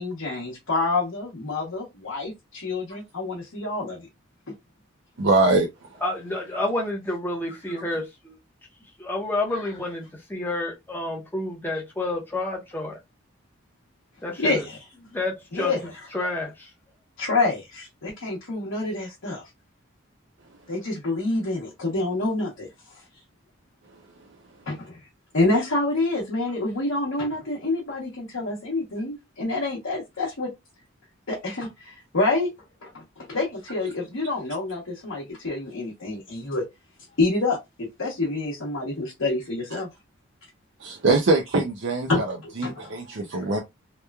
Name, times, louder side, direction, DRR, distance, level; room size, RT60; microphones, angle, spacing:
voice 1, 0.0-4.1 4.5-4.6 7.8-7.9 9.5-9.6 14.4-14.8 15.5-15.8 17.2-19.4 20.7-23.0 24.7-25.0 25.3-30.5 31.3-32.5 32.8-36.6 37.1-39.9 42.1-43.0 43.3-43.6, left 2 dB, 75° left, 0.9 m, -27 dB
voice 2, 5.2-5.7 40.8-42.2 42.6-43.6, right 3 dB, 60° right, 0.5 m, -22 dB
voice 3, 6.0-8.4 9.0-13.0 14.2-14.6 15.1-15.7 16.1-16.7, left 2 dB, 10° left, 0.6 m, -29 dB
2.9 x 2.2 x 2.2 m
head